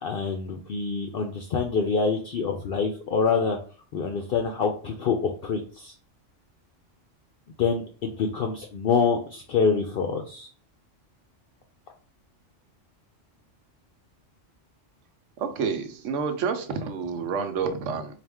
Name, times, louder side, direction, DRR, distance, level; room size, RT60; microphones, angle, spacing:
voice 1, 0.0-3.6 3.9-5.2 5.4-5.9 7.6-10.5, left 5 dB, 60° left, 3 dB, 0.6 m, -26 dB
voice 2, 15.4-18.2, right 5 dB, 80° right, 7 dB, 1.0 m, -29 dB
4.1 x 2.4 x 3.4 m, 0.39 s
omnidirectional pair, 1.3 m